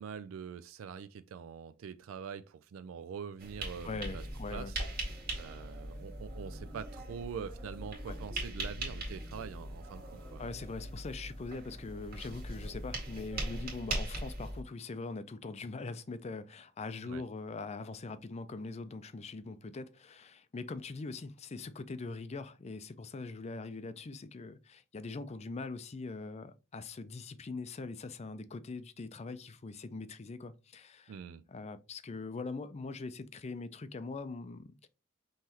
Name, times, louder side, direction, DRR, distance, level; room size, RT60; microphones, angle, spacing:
voice 1, 0.0-4.2 4.5-4.8 5.3-10.4 17.0-17.2 31.1-31.4, right 7 dB, 70° right, 0.3 m, -44 dB
sound 1, 3.4-14.6, right 1 dB, 45° right, 1.7 m, -40 dB
voice 2, 3.8-4.7 8.1-8.2 10.4-31.2 31.5-34.9, left 3 dB, 30° left, 0.4 m, -42 dB
5.5 x 3.1 x 2.9 m
head